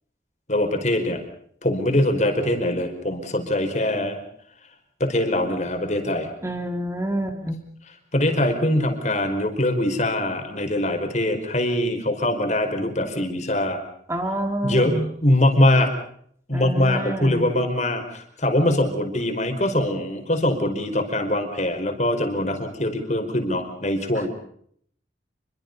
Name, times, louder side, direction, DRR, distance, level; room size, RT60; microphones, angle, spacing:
voice 1, 0.5-1.2 1.6-4.2 5.0-6.3 8.1-13.8 14.6-15.9 16.5-24.3, left 1 dB, 40° left, 6 dB, 5.0 m, -22 dB
voice 2, 6.4-7.6 14.1-15.1 16.5-17.5 24.2-24.3, right 1 dB, 15° right, 5 dB, 2.6 m, -27 dB
28.5 x 23.5 x 5.4 m, 0.65 s
head